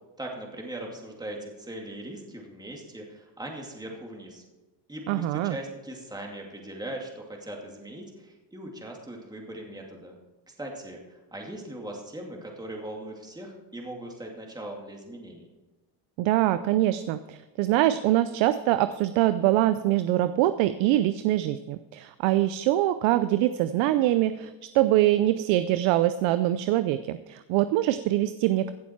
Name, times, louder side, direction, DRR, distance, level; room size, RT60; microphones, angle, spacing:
voice 1, 0.2-4.4 4.9-10.2 10.5-15.5, right 1 dB, 10° right, 0 dB, 2.5 m, -40 dB
voice 2, 5.1-5.5 16.2-28.7, right 14 dB, 80° right, 13 dB, 0.6 m, -24 dB
16.0 x 7.2 x 4.5 m, 1.1 s
supercardioid pair, 85°, 47 cm